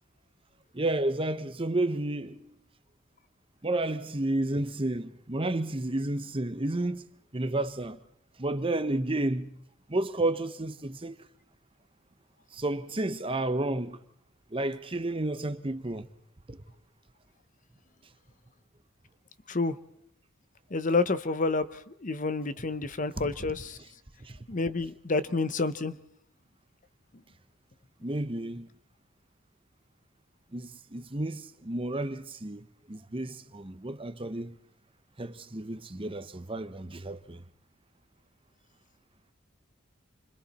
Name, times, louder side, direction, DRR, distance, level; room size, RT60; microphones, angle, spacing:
voice 1, 0.7-2.5 3.6-7.1 7.3-8.0 8.4-9.6 9.9-11.2 12.5-14.0 14.5-16.1 16.5-16.6 23.2-23.3 24.2-24.4 28.0-28.7 30.5-34.5 35.2-37.4, right 2 dB, 25° right, 0.9 m, -31 dB
voice 2, 19.5-19.8 20.7-23.8 24.5-26.0, left 3 dB, 40° left, 0.8 m, -29 dB
29.0 x 26.0 x 4.3 m
head